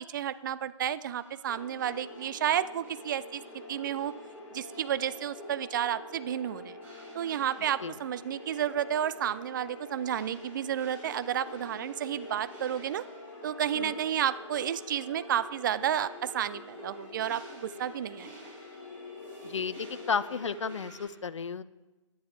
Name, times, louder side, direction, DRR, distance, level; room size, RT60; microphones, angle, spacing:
voice 1, 0.0-3.4 3.7-4.1 4.5-6.8 7.1-13.0 13.4-18.3, right 10 dB, 40° right, 15 dB, 0.5 m, -31 dB
sound 1, 1.2-21.1, right 1 dB, 15° right, 4.6 m, -52 dB
sound 2, 1.5-20.6, left 2 dB, 40° left, 2.5 m, -47 dB
voice 2, 19.4-21.6, left 6 dB, 65° left, 17 dB, 0.5 m, -33 dB
16.5 x 10.5 x 3.4 m, 1.2 s
figure-of-eight pair, 125°, 16 cm